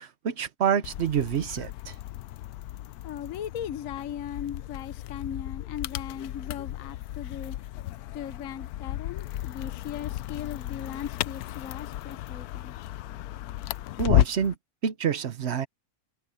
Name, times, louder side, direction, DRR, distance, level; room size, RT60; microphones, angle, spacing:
voice 1, 0.0-1.9 14.0-14.5 14.8-15.7, right 8 dB, 55° right, 0.9 m, -27 dB
sound 1, 0.8-14.6, left 14 dB, 80° left, 1.1 m, -33 dB
voice 2, 3.0-7.6 8.1-12.8, left 9 dB, 65° left, 1.2 m, -38 dB
omnidirectional pair, 1.6 m